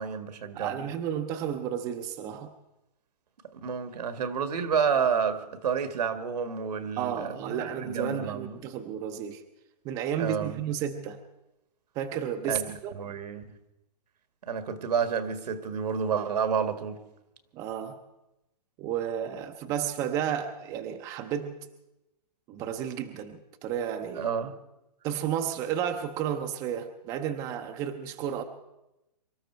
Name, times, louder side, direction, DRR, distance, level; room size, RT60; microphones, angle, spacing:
voice 1, 0.0-0.9 3.5-8.6 10.2-10.6 12.5-13.4 14.4-17.0 24.1-24.5, right 6 dB, 75° right, 1.8 m, -30 dB
voice 2, 0.5-2.5 7.0-9.4 9.8-11.2 12.0-12.9 17.5-18.0 18.8-21.7 22.5-24.3 25.0-28.4, right 9 dB, 15° right, 0.7 m, -32 dB
24.5 x 13.0 x 4.5 m
hypercardioid pair, 160°, 21 cm